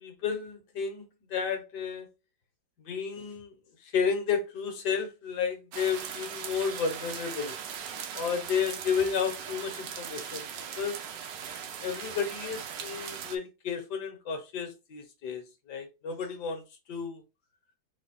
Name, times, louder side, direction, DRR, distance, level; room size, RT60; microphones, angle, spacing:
voice 1, 0.0-2.1 2.9-3.5 3.8-7.6 8.1-10.4 10.8-11.0 11.8-16.6 16.9-17.2, left 6 dB, 70° left, 1.6 m, -32 dB
sound 1, 5.7-13.4, right 8 dB, 85° right, 1.4 m, -39 dB
4.4 x 2.3 x 4.2 m
omnidirectional pair, 1.9 m